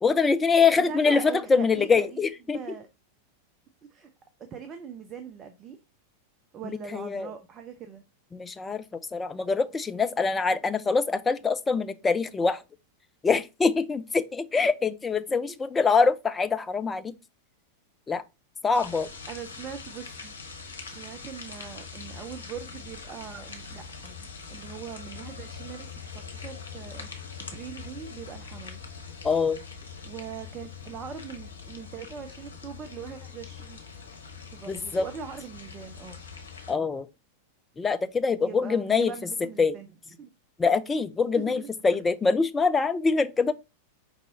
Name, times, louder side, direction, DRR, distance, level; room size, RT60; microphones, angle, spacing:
voice 1, 0.0-2.6 6.6-7.3 8.3-12.6 13.2-17.1 18.1-18.2 18.6-19.1 29.2-29.6 34.7-35.1 36.7-37.1 37.8-39.1 39.6-39.7 40.6-43.5, left 4 dB, 15° left, 0.4 m, -24 dB
voice 2, 0.8-2.9 3.9-4.1 4.5-5.8 6.5-8.0 19.3-20.3 20.9-27.2 27.5-28.8 30.0-33.8 34.5-36.2 36.7-36.9 38.4-39.9 40.2-40.3 41.4-41.7, right 7 dB, 25° right, 0.6 m, -41 dB
sound 1, 18.7-36.7, left 5 dB, 70° left, 1.0 m, -43 dB
4.7 x 4.0 x 2.7 m
figure-of-eight pair, 90°, 0 cm